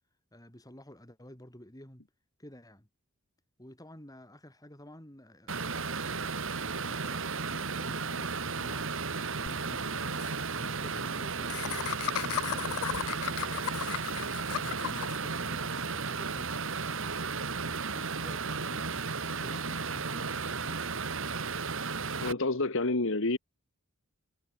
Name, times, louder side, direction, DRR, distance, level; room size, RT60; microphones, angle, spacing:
voice 1, 0.3-2.0 2.4-2.9 3.6-8.9 9.4-10.2 10.6-12.8 13.1-14.3 14.5-16.5 17.9-21.2, equal, 15° left, 4.9 m, -51 dB
sound 1, 5.5-22.3, right 4 dB, 65° right, 2.3 m, -34 dB
Laughter, 9.5-9.6 9.8-9.9 10.1-10.3 11.5-15.2, left 11 dB, 85° left, 0.4 m, -35 dB
voice 2, 22.2-23.4, left 2 dB, 65° left, 1.7 m, -28 dB
head